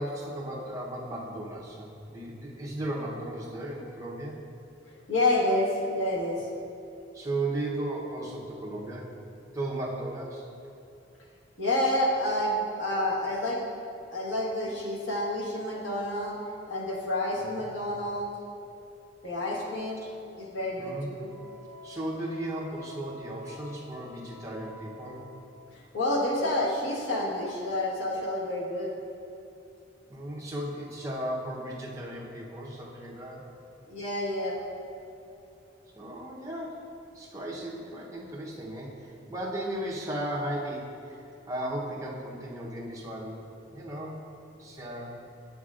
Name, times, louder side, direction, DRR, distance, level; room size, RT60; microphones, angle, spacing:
voice 1, 0.0-4.4 7.1-9.1 9.5-10.5 17.4-17.6 20.8-21.1 21.8-25.3 30.1-33.5 36.0-36.9 37.1-44.2 44.5-45.1, right 1 dB, 20° right, -4 dB, 0.8 m, -36 dB
voice 2, 4.9-6.5 11.6-13.6 14.1-16.4 16.7-18.3 19.2-20.0 20.4-21.3 25.7-28.9 33.9-34.6, left 1 dB, 90° left, -4 dB, 1.4 m, -29 dB
Wind instrument woodwind instrument, 21.3-25.7, left 2 dB, 40° left, 0.9 m, -49 dB
8.0 x 7.6 x 2.4 m, 2.8 s
head